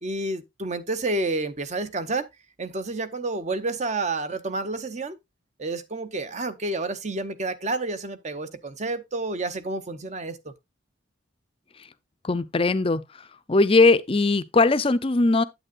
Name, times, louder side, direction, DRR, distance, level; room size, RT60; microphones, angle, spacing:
voice 1, 0.0-2.3 2.6-5.2 5.6-10.5, right 2 dB, 35° right, 0.7 m, -29 dB
voice 2, 12.2-13.0 13.5-15.4, left 3 dB, 30° left, 0.5 m, -19 dB
9.0 x 8.5 x 2.5 m
head